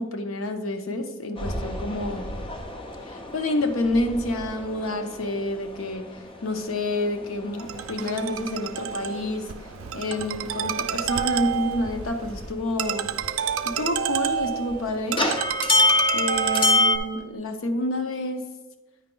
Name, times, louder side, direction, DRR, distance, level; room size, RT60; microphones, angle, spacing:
voice 1, 0.0-2.2 3.0-9.5 9.9-13.1 13.6-15.2 16.1-18.5, left 1 dB, 75° left, 6 dB, 0.7 m, -28 dB
sound 1, 1.4-12.7 13.0-17.0, left 2 dB, 25° left, 0.7 m, -29 dB
Ringtone, 7.6-17.2, right 9 dB, 70° right, 0.4 m, -29 dB
9.4 x 4.8 x 3.8 m, 1.2 s
head